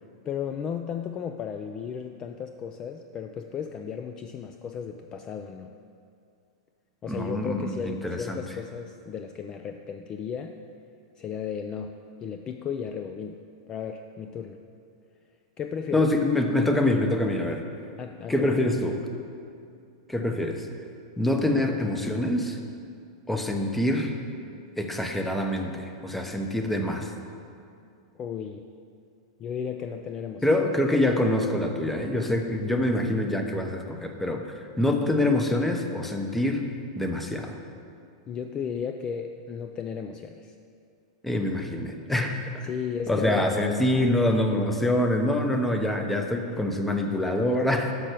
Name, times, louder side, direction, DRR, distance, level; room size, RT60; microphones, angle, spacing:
voice 1, 0.3-5.7 7.0-10.6 11.2-14.6 15.6-16.1 18.0-18.6 28.2-28.7 29.4-30.5 38.3-40.5 42.6-43.5, left 7 dB, 25° left, 6 dB, 0.3 m, -34 dB
voice 2, 7.1-8.4 15.9-17.6 18.3-19.0 20.1-20.7 21.2-22.6 23.3-24.1 24.8-27.1 30.4-34.4 34.8-36.7 37.0-37.6 41.2-42.6 43.1-47.9, left 1 dB, 5° left, 4 dB, 0.7 m, -25 dB
6.3 x 5.9 x 6.7 m, 2.4 s
hypercardioid pair, 125°, 3 cm